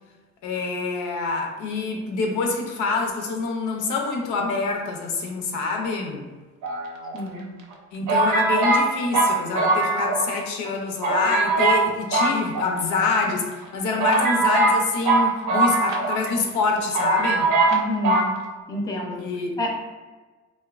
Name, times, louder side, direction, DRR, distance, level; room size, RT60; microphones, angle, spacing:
voice 1, 0.4-6.3 7.9-17.5 19.2-19.6, left 4 dB, 85° left, 1 dB, 0.5 m, -26 dB
sound 1, 6.6-7.4 8.1-10.4 10.6-10.7 11.0-11.8 12.1-13.1 13.6-13.7 14.0-16.3 16.6-16.7 16.9-17.8 18.0-18.3, right 2 dB, 80° right, 0.6 m, -21 dB
voice 2, 7.1-7.6 17.7-18.3 18.7-19.3 19.6-19.8, left 1 dB, 15° left, 1 dB, 0.4 m, -28 dB
3.0 x 2.1 x 2.3 m, 1.3 s
cardioid pair, 90°, 30 cm